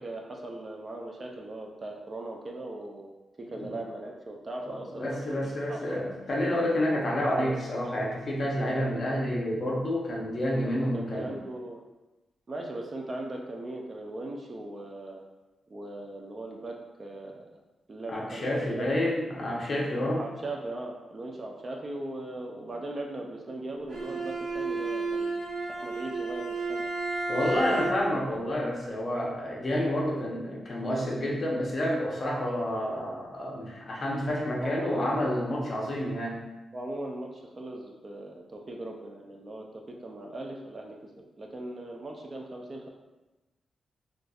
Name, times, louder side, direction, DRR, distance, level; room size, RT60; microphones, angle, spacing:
voice 1, 0.0-3.1 3.4-6.1 10.6-11.8 12.5-15.2 15.7-17.4 17.9-19.0 20.2-25.4 25.7-26.8 27.6-27.9 34.6-35.1 36.7-41.1 41.4-42.9, right 2 dB, 30° right, 1 dB, 0.4 m, -39 dB
voice 2, 4.7-11.3 18.1-20.2 27.3-36.4, left 1 dB, 40° left, -3 dB, 0.7 m, -29 dB
Bowed string instrument, 23.9-28.3, right 3 dB, 80° right, 0.8 m, -32 dB
4.0 x 2.4 x 2.3 m, 1.1 s
wide cardioid pair, 130°, 0 cm